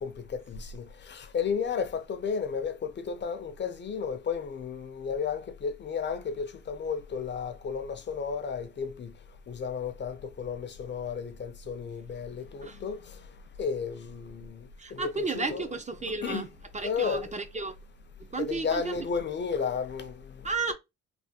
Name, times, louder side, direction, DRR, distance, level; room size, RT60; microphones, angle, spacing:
voice 1, 0.0-9.1 9.5-13.3 13.6-15.7 16.0-16.5 16.8-17.3 18.4-20.4, left 6 dB, 40° left, 0.5 m, -33 dB
voice 2, 14.8-16.5 16.7-17.7 18.3-19.0 20.4-20.7, right 4 dB, 25° right, 0.4 m, -33 dB
3.3 x 2.1 x 2.7 m
cardioid pair, 90°, 30 cm